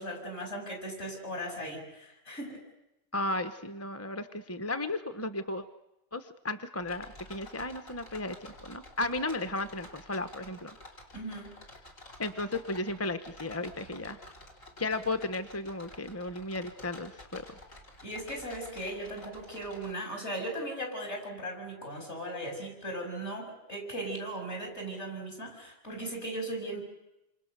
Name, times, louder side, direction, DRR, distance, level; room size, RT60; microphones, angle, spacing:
voice 1, 0.0-2.6 11.1-11.6 18.0-26.8, right 1 dB, 55° left, 1 dB, 7.6 m, -38 dB
voice 2, 3.1-5.6 6.1-8.3 8.6-10.7 12.2-14.2 14.8-17.4, left 2 dB, 10° left, 9 dB, 1.0 m, -34 dB
sound 1, 6.8-19.9, left 1 dB, 75° left, 4.9 m, -51 dB
28.5 x 27.0 x 6.8 m, 0.90 s
omnidirectional pair, 1.4 m